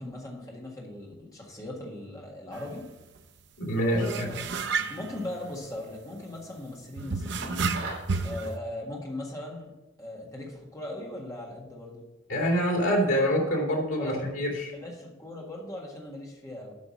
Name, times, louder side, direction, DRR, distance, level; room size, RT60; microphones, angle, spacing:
voice 1, 0.0-2.8 3.9-4.4 4.9-7.6 8.2-9.7 10.0-12.0 14.0-14.2 14.7-16.8, left 1 dB, 15° left, -2 dB, 1.6 m, -39 dB
sound 1, 2.5-2.6 3.0-3.2 3.9-6.0 7.0-8.5, right 4 dB, 55° right, 0.6 m, -31 dB
voice 2, 3.6-4.3 12.3-14.7, equal, 85° left, -1 dB, 2.7 m, -26 dB
sound 2, 7.4-8.2, right 3 dB, 80° right, 2.6 m, -38 dB
8.4 x 5.0 x 6.3 m, 1.0 s
head